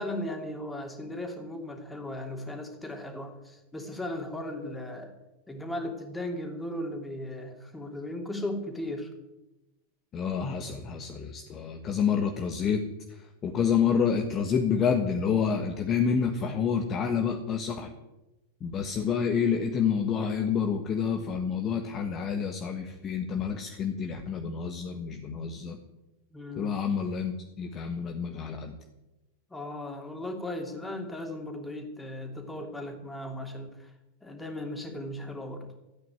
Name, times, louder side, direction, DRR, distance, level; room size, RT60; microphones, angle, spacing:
voice 1, 0.0-5.1 5.5-9.1 26.3-26.8 29.5-33.9 34.2-35.6, left 1 dB, 10° left, 3 dB, 3.0 m, -37 dB
voice 2, 10.1-12.8 13.1-17.9 18.6-25.8 26.6-28.7, left 6 dB, 30° left, 5 dB, 1.5 m, -28 dB
14.0 x 9.3 x 9.1 m, 0.99 s
figure-of-eight pair, 90°, 0 cm